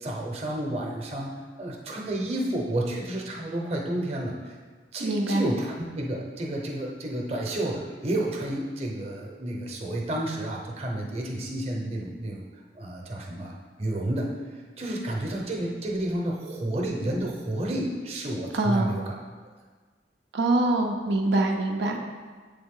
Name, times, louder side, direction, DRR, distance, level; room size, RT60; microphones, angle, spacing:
voice 1, 0.0-4.6 4.9-12.5 12.7-13.5 13.8-14.3 14.8-19.1, right 1 dB, 35° right, -1 dB, 0.8 m, -30 dB
voice 2, 5.0-5.4 18.5-19.0 20.3-22.0, right 2 dB, 85° right, 2 dB, 0.6 m, -24 dB
7.9 x 3.6 x 3.7 m, 1.5 s
head